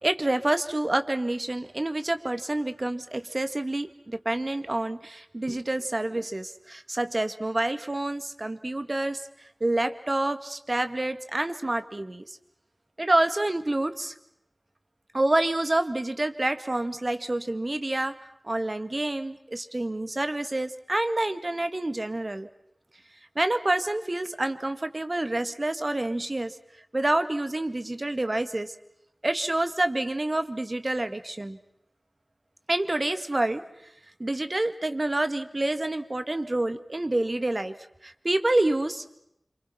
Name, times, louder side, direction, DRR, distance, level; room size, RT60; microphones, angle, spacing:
voice 1, 0.0-9.2 9.6-12.4 13.0-14.1 15.1-18.1 18.4-22.5 23.4-26.6 26.9-28.7 29.2-31.6 32.7-33.6 34.2-37.8 38.0-39.1, right 2 dB, 45° right, 9 dB, 1.9 m, -28 dB
27.0 x 26.0 x 5.9 m, 0.79 s
wide cardioid pair, 45°, 0 cm